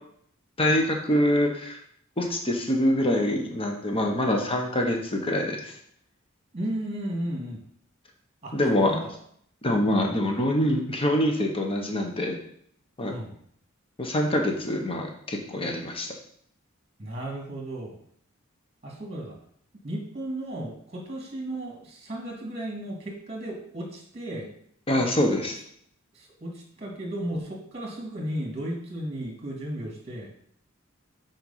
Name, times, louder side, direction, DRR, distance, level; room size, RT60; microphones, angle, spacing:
voice 1, 0.6-1.8 2.2-5.7 8.5-8.9 9.6-12.4 13.0-13.1 14.0-16.1 24.9-25.6, left 1 dB, 25° left, 2 dB, 1.2 m, -25 dB
voice 2, 6.5-7.6 8.4-8.5 8.8-9.1 13.0-13.4 17.0-18.0 18.8-19.4 19.8-24.5 26.2-30.3, right 1 dB, 30° right, -1 dB, 2.0 m, -34 dB
7.9 x 4.6 x 5.6 m, 0.65 s
head